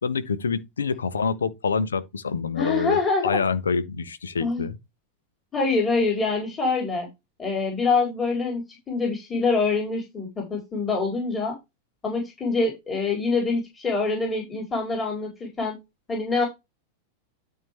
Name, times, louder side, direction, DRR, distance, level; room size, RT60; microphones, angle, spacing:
voice 1, 0.0-4.8, left 5 dB, 70° left, 1.2 m, -27 dB
voice 2, 2.6-3.4 4.4-4.7 5.5-7.1 7.4-11.5 12.0-15.8 16.1-16.5, left 4 dB, 20° left, 4.2 m, -25 dB
12.5 x 4.8 x 3.5 m
figure-of-eight pair, 90°, 0 cm